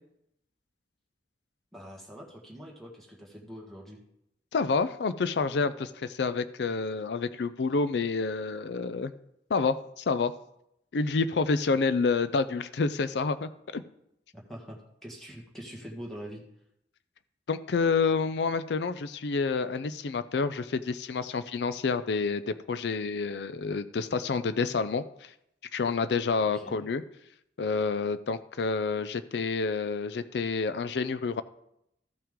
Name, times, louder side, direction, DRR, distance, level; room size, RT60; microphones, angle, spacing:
voice 1, 1.7-4.0 14.3-16.4 26.4-26.8, equal, ahead, -2 dB, 1.6 m, -44 dB
voice 2, 4.5-9.1 9.5-10.3 10.9-13.8 17.5-25.3 25.7-27.0 27.6-31.4, left 4 dB, 75° left, 13 dB, 0.5 m, -28 dB
13.5 x 5.8 x 3.7 m, 0.78 s
head